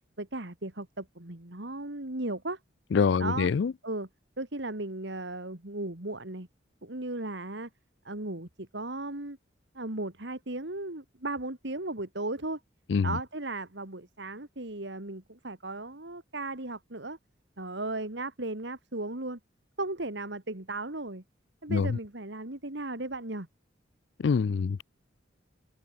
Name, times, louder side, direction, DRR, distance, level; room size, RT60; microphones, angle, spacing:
voice 1, 0.2-2.6 3.2-3.5 3.8-4.1 4.4-6.5 6.8-7.7 8.0-9.4 9.7-12.6 13.0-17.2 17.6-19.4 19.8-21.2 21.6-23.5, right 2 dB, 60° right, 2.5 m, -36 dB
voice 2, 2.9-3.7 12.9-13.2 21.7-22.0 24.2-24.8, left 5 dB, 65° left, 0.4 m, -25 dB
open air
head